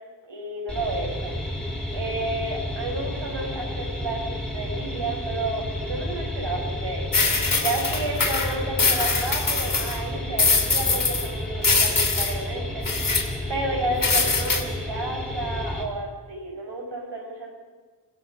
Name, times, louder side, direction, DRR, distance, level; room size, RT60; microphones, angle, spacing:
voice 1, 0.3-1.4 1.9-7.1 7.6-12.9 13.5-17.5, right 2 dB, 75° right, -1 dB, 5.8 m, -31 dB
sound 1, 0.7-15.8, left 1 dB, ahead, 5.4 m, -31 dB
sound 2, 7.1-10.0 10.4-11.3 11.6-12.3 12.9-13.2 14.0-14.6, left 3 dB, 50° left, 3.0 m, -22 dB
27.0 x 17.5 x 5.9 m, 1.4 s
wide cardioid pair, 80°, 43 cm